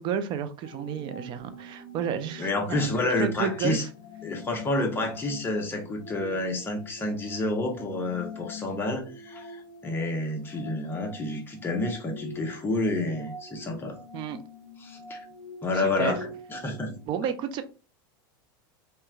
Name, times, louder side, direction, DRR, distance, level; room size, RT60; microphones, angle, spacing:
voice 1, 0.0-2.9 3.2-3.9 14.1-14.4 15.7-16.2 17.1-17.6, right 8 dB, 45° right, 0.4 m, -31 dB
sound 1, 0.6-17.1, left 2 dB, 50° left, 0.7 m, -45 dB
voice 2, 2.4-3.8 4.2-14.0 14.8-15.2 15.6-17.0, left 2 dB, 20° left, 0.8 m, -29 dB
3.0 x 2.2 x 2.3 m
supercardioid pair, 115°, 12 cm